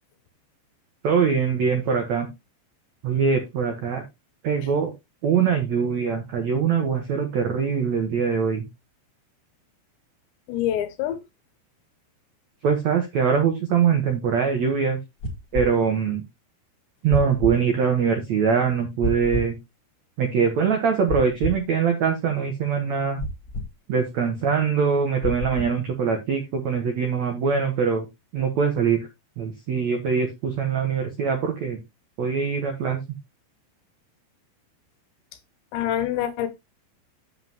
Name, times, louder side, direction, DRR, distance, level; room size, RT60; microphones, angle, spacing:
voice 1, 1.0-2.3 3.0-4.0 4.4-4.9 5.2-8.6 12.6-15.0 15.5-16.2 17.0-19.5 20.2-23.2 23.9-28.0 28.3-29.1 29.4-31.8 32.2-33.0, right 6 dB, 85° right, 1.5 m, -23 dB
voice 2, 10.5-11.2 35.7-36.5, left 11 dB, 75° left, 3.1 m, -26 dB
Heartbeats latidos corazon, 15.2-15.7 17.1-17.6 19.0-19.5 21.1-21.6 23.2-23.7 25.2-25.8, left 1 dB, 50° left, 1.7 m, -28 dB
9.0 x 7.4 x 2.9 m
omnidirectional pair, 5.3 m